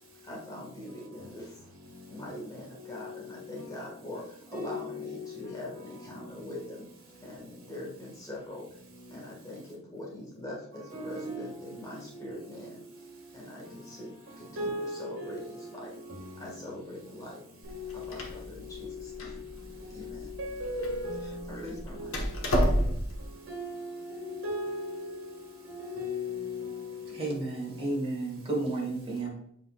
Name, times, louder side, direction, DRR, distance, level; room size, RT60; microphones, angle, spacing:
voice 1, 0.2-1.7 2.1-6.9 7.2-8.6 9.1-12.8 13.3-14.1 14.4-15.9 16.4-17.4 17.9-19.5 19.9-20.4 21.5-22.2, left 1 dB, 20° left, 1.9 m, -42 dB
voice 2, 4.5-5.1 10.9-11.4 12.1-12.3 14.6-15.7 17.7-18.0 20.4-21.4 22.0-22.1 23.5-24.2 24.4-25.1 25.7-26.7, left 1 dB, 70° right, 2.0 m, -36 dB
Door, 17.6-23.2, equal, 70° left, 1.4 m, -32 dB
voice 3, 27.1-29.3, right 2 dB, 25° right, 2.0 m, -32 dB
7.5 x 5.2 x 2.5 m
head